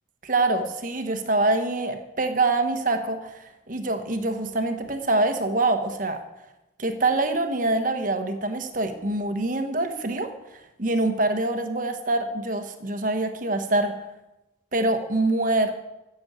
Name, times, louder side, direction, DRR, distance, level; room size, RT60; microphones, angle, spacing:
voice 1, 0.2-6.2 6.8-10.3 10.8-13.9 14.7-15.7, right 2 dB, 45° right, 7 dB, 1.2 m, -25 dB
15.0 x 7.1 x 8.0 m, 1.0 s
head